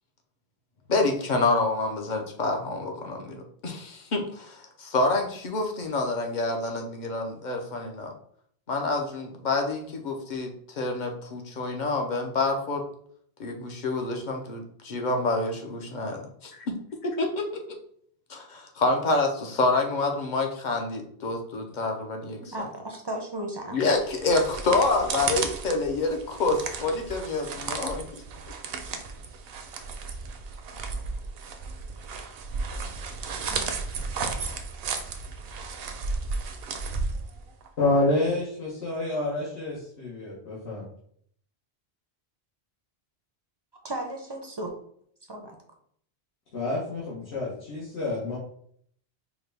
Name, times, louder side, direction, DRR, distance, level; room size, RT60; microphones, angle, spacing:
voice 1, 0.9-8.1 8.7-12.8 13.4-16.7 17.0-17.5 18.3-22.4 23.7-28.2, left 3 dB, 50° left, 3 dB, 0.7 m, -27 dB
voice 2, 22.2-23.8 33.5-33.7 43.8-44.7 45.3-45.6, right 1 dB, 35° right, 2 dB, 0.4 m, -35 dB
sound 1, 24.0-37.7, right 4 dB, 70° right, 0.8 m, -34 dB
voice 3, 37.8-40.9 46.5-48.4, left 2 dB, 80° left, -6 dB, 1.3 m, -28 dB
4.7 x 2.2 x 3.3 m, 0.64 s
omnidirectional pair, 1.1 m